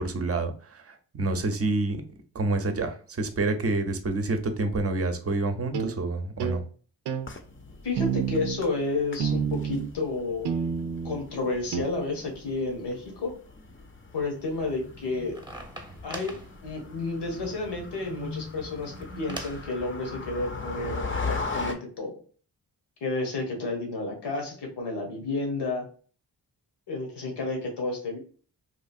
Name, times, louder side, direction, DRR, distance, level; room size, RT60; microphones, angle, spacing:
voice 1, 0.0-2.0 2.3-6.6, right 2 dB, 35° right, 8 dB, 0.6 m, -28 dB
sound 1, 5.7-6.0 6.4-6.6 7.1-7.3 8.0-8.6 9.2-9.9 10.4-11.2 11.7-11.8, right 7 dB, 85° right, 0.5 m, -29 dB
sound 2, 7.2-21.7, left 3 dB, 30° left, 0.6 m, -39 dB
voice 2, 7.8-10.5 11.0-13.3 14.1-15.4 16.0-16.4 16.6-22.2 23.0-25.9 26.9-28.2, left 3 dB, 85° left, 2 dB, 1.1 m, -31 dB
sound 3, 14.5-19.7, equal, 10° right, 0.8 m, -43 dB
3.0 x 2.4 x 2.5 m, 0.41 s
cardioid pair, 55°, 40 cm